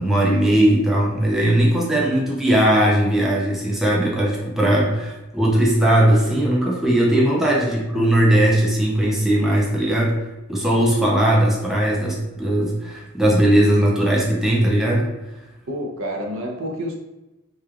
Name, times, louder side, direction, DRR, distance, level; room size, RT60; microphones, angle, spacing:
voice 1, 0.0-10.2 10.5-15.1, right 1 dB, ahead, -4 dB, 0.4 m, -18 dB
voice 2, 7.4-7.8 15.7-16.9, equal, 70° right, 1 dB, 0.5 m, -29 dB
3.0 x 2.2 x 2.3 m, 1.0 s
head